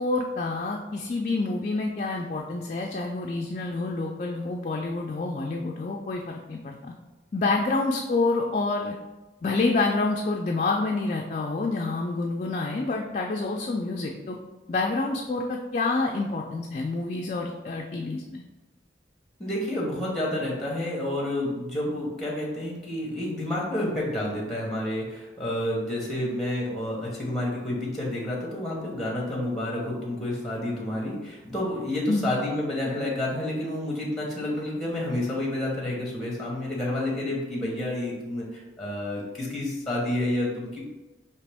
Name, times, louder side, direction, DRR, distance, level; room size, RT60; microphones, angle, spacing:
voice 1, 0.0-6.9 7.3-8.9 9.4-14.4 14.7-18.4 32.1-32.3, left 3 dB, 40° left, 0 dB, 0.3 m, -28 dB
voice 2, 19.4-40.8, left 1 dB, ahead, -3 dB, 0.9 m, -29 dB
4.9 x 2.9 x 3.4 m, 1.1 s
head